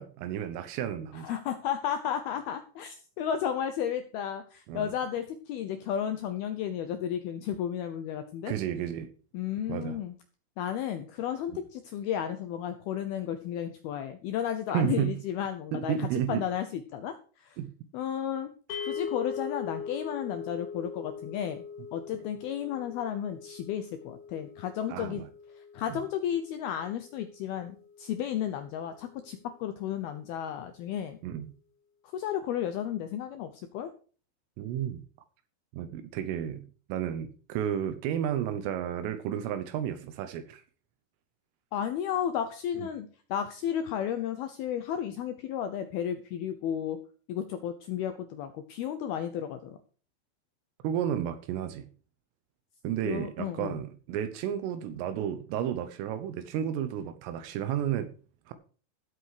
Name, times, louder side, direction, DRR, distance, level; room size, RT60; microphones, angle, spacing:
voice 1, 0.0-1.4 4.7-4.9 8.5-9.1 9.7-10.0 14.7-15.2 15.7-16.5 17.6-17.7 18.7-18.8 24.9-25.2 25.9-26.0 31.2-31.5 34.6-35.0 35.7-40.6 42.8-42.9 50.8-51.9 52.8-58.1 58.5-58.6, right 10 dB, 85° right, 3.6 m, -32 dB
voice 2, 1.1-8.5 9.3-10.2 10.6-17.6 17.9-18.5 18.9-21.6 21.9-25.2 25.5-31.2 32.1-33.9 41.7-47.0 47.3-49.8 53.0-53.8, left 9 dB, 85° left, 2.2 m, -33 dB
sound 1, 18.7-29.0, left 6 dB, 65° left, 3.3 m, -42 dB
15.0 x 8.0 x 4.8 m
omnidirectional pair, 5.7 m